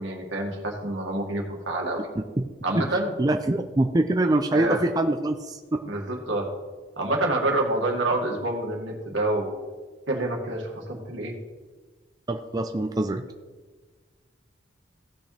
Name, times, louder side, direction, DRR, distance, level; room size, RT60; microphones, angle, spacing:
voice 1, 0.0-2.1 2.6-3.1 4.5-4.8 5.9-6.5 7.0-9.5 10.1-11.3, right 2 dB, 80° right, 0 dB, 2.1 m, -27 dB
voice 2, 3.2-5.8 12.3-13.2, right 2 dB, 20° right, 5 dB, 0.4 m, -24 dB
17.0 x 6.4 x 3.3 m, 1.4 s
head